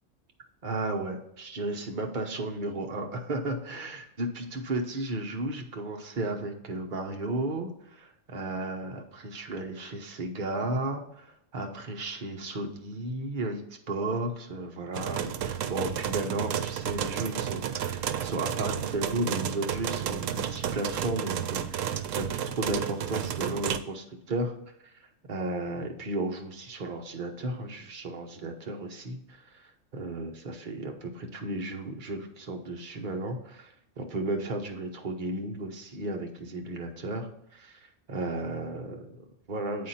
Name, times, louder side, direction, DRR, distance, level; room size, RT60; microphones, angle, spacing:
voice 1, 0.6-24.6 24.8-24.9 25.3-39.9, right 2 dB, 40° right, 3 dB, 1.1 m, -34 dB
sound 1, 14.9-23.8, right 9 dB, 85° right, 1.0 m, -32 dB
8.5 x 4.3 x 4.2 m, 0.78 s
omnidirectional pair, 1.3 m